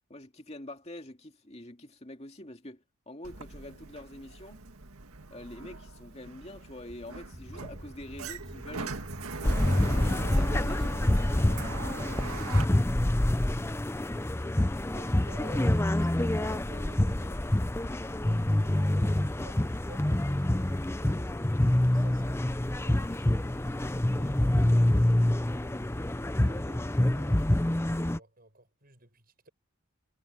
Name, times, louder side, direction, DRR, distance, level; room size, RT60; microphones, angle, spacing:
voice 1, 0.1-4.6 5.3-9.0 9.3-11.0 11.3-11.6, left 1 dB, 30° left, 2.4 m, -45 dB
Sliding door, 3.2-12.6, right 3 dB, 80° right, 1.9 m, -41 dB
sound 1, 7.3-13.5, equal, 10° right, 3.4 m, -47 dB
sound 2, 9.4-28.2, left 1 dB, 10° left, 0.5 m, -26 dB
voice 2, 12.8-13.2 14.8-21.5 21.8-25.8 26.4-29.5, right 2 dB, 40° right, 7.7 m, -54 dB
head